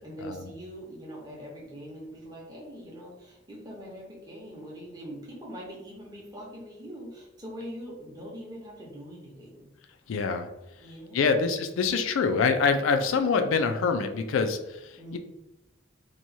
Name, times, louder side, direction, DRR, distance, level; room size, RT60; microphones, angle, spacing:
voice 1, 0.0-9.7 10.8-11.4 15.0-15.2, equal, 20° right, -4 dB, 0.7 m, -42 dB
voice 2, 10.1-10.5 11.1-15.2, left 5 dB, 85° left, 7 dB, 0.3 m, -25 dB
2.9 x 2.2 x 2.6 m, 0.98 s
head